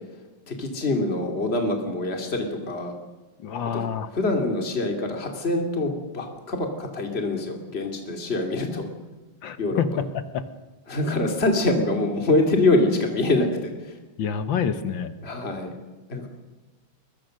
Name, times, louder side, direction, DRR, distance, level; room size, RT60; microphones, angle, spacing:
voice 1, 0.5-2.9 3.7-3.8 4.1-8.9 9.6-9.8 10.9-13.9 15.2-15.7 16.1-16.3, left 2 dB, 30° left, 3 dB, 2.9 m, -25 dB
voice 2, 3.4-4.1 9.4-10.4 14.2-15.1, left 7 dB, 65° left, 11 dB, 1.8 m, -27 dB
22.0 x 22.0 x 6.5 m, 1.2 s
omnidirectional pair, 2.3 m